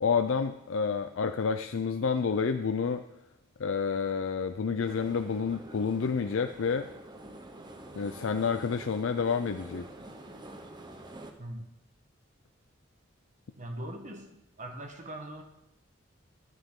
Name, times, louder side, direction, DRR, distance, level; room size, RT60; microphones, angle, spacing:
voice 1, 0.0-3.0 3.6-6.9 7.9-9.9, left 5 dB, 85° left, 8 dB, 0.5 m, -29 dB
sound 1, 4.8-11.3, right 1 dB, 25° right, 1.0 m, -47 dB
voice 2, 11.4-11.7 13.6-14.3 14.6-15.4, right 1 dB, 40° right, 4 dB, 1.3 m, -40 dB
13.0 x 9.2 x 3.8 m, 0.87 s
head